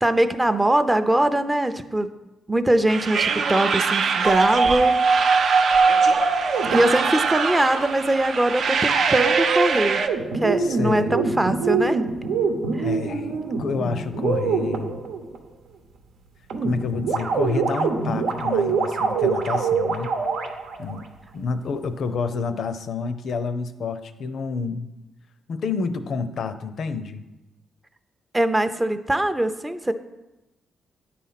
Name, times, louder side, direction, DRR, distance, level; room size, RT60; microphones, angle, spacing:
voice 1, 0.0-2.1 2.5-4.9 6.7-10.0 10.3-12.1 12.7-12.9 28.3-29.9, right 1 dB, 15° right, 10 dB, 0.5 m, -22 dB
sound 1, 2.9-10.1, right 5 dB, 65° right, 0.6 m, -24 dB
sound 2, 4.2-7.4 8.9-15.4 16.5-21.0, right 4 dB, 85° right, 0.9 m, -23 dB
voice 2, 10.6-11.4 12.8-15.0 16.6-20.1 20.8-21.1 21.3-24.9 25.5-27.2, left 5 dB, 65° left, 10 dB, 0.6 m, -29 dB
9.7 x 4.2 x 5.8 m, 1.0 s
cardioid pair, 100°, 0 cm